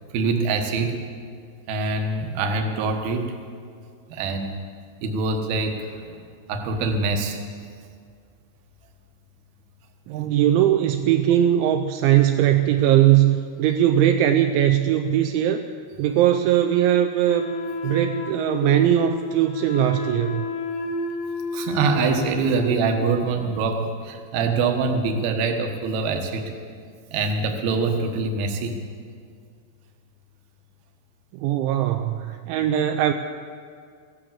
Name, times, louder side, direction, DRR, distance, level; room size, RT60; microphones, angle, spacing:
voice 1, 0.1-1.0 1.7-3.3 4.1-4.5 5.0-6.2 6.5-7.4 21.5-26.5 27.1-28.8, right 4 dB, 65° right, 4 dB, 2.5 m, -24 dB
voice 2, 10.1-15.6 16.0-17.5 17.8-20.5 31.3-33.1, right 11 dB, 85° right, 6 dB, 2.7 m, -20 dB
Wind instrument woodwind instrument, 17.2-23.2, left 2 dB, 70° left, 2.8 m, -30 dB
16.5 x 11.5 x 7.5 m, 2.2 s
omnidirectional pair, 5.9 m